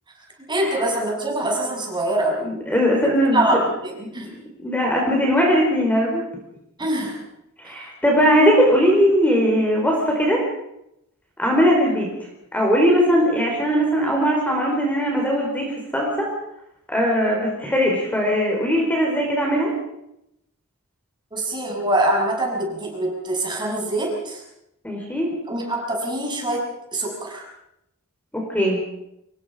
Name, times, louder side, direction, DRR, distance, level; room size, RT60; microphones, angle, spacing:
voice 1, 0.5-2.4 3.3-4.3 6.8-7.2 7.6-7.9 21.3-24.4 25.5-27.5, right 1 dB, 20° right, 0 dB, 6.5 m, -24 dB
voice 2, 2.4-3.4 4.6-6.2 7.6-10.4 11.4-12.1 12.5-16.3 16.9-19.7 24.8-25.3 28.3-28.8, equal, 5° left, -1 dB, 4.7 m, -19 dB
25.5 x 22.0 x 5.2 m, 0.80 s
head